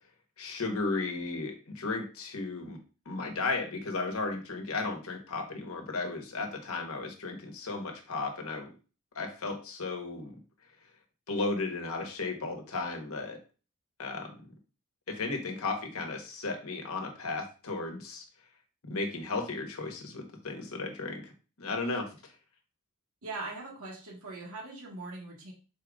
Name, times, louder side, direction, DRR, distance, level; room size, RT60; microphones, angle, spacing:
voice 1, 0.4-2.8 3.0-8.7 9.1-10.4 11.3-13.4 14.0-14.4 15.1-18.2 18.8-21.3 21.6-22.3, left 3 dB, 75° left, 3 dB, 1.1 m, -34 dB
voice 2, 23.2-25.5, right 3 dB, 75° right, -2 dB, 1.4 m, -41 dB
4.3 x 2.5 x 4.7 m, 0.35 s
head